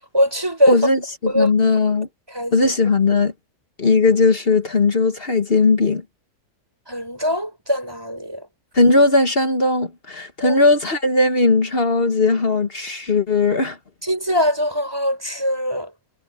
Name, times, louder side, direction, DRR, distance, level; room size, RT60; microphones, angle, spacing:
voice 1, 0.1-0.8 1.3-1.5 2.3-2.7 6.9-8.5 10.4-10.6 14.0-15.9, equal, 15° right, 6.2 m, -22 dB
voice 2, 0.7-2.1 2.5-3.3 3.8-6.0 8.7-13.8, left 3 dB, 40° left, 1.5 m, -18 dB
omnidirectional pair, 1.7 m